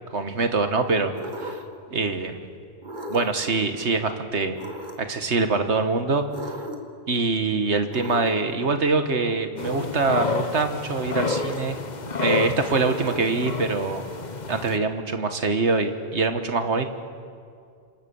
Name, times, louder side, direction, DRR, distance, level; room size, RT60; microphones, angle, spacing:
voice 1, 0.1-1.6 1.9-2.4 3.1-4.6 5.0-6.3 7.1-11.8 12.2-14.0 14.5-16.9, right 3 dB, 85° right, 7 dB, 1.8 m, -24 dB
sound 1, 1.2-1.8 2.8-3.5 4.5-5.2 6.3-7.0 7.9-8.6 9.6-10.0 11.2-11.9 12.9-13.5, equal, 45° right, 2.2 m, -37 dB
sound 2, 9.6-14.8, left 4 dB, 40° left, 1.2 m, -30 dB
27.5 x 25.5 x 7.1 m, 2.3 s
omnidirectional pair, 1.1 m